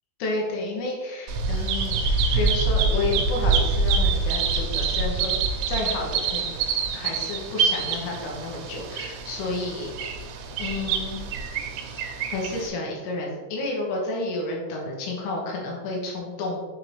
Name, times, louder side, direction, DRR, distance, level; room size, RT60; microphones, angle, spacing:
voice 1, 0.2-2.0 2.3-5.3 5.7-6.5 6.9-9.9 10.6-11.2 12.3-16.7, left 2 dB, 70° left, -2 dB, 2.9 m, -30 dB
Bird vocalization bird call bird song, 1.3-12.7, right 4 dB, 85° right, 2.4 m, -26 dB
6.7 x 4.5 x 3.3 m, 1.3 s
omnidirectional pair, 5.5 m